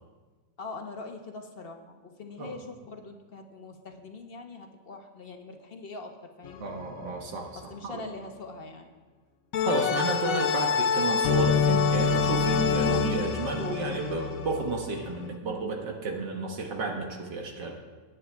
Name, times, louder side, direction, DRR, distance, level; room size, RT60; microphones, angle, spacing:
voice 1, 0.6-6.7 7.5-8.9, left 3 dB, 40° left, 4 dB, 1.1 m, -43 dB
sound 1, 6.4-6.9 9.5-15.3, left 6 dB, 60° left, 1.1 m, -26 dB
voice 2, 6.6-8.0 9.6-17.8, right 3 dB, 80° right, 1 dB, 2.0 m, -32 dB
22.0 x 9.7 x 3.5 m, 1.4 s
omnidirectional pair, 1.9 m